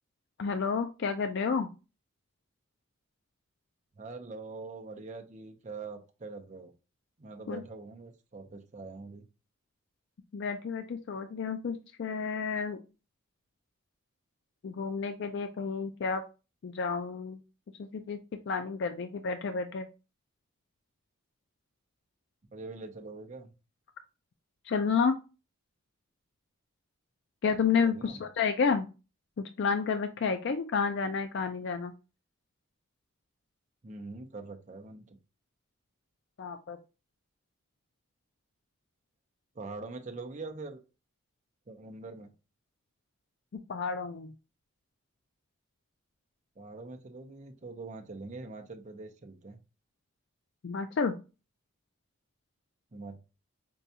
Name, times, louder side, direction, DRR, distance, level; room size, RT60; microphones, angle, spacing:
voice 1, 0.4-1.7 7.5-7.6 10.3-12.8 14.6-16.2 16.6-17.4 17.8-18.2 18.5-19.9 24.7-25.2 27.4-28.9 29.4-31.9 36.4-36.8 43.7-44.3 50.6-51.1, left 5 dB, 55° left, 7 dB, 0.3 m, -30 dB
voice 2, 4.0-6.7 7.2-9.3 22.5-23.5 27.8-28.2 33.8-35.2 39.5-40.8 41.7-42.3 46.6-49.6 52.9-53.2, right 3 dB, 35° right, 4 dB, 0.6 m, -43 dB
5.3 x 2.3 x 2.7 m, 0.30 s
head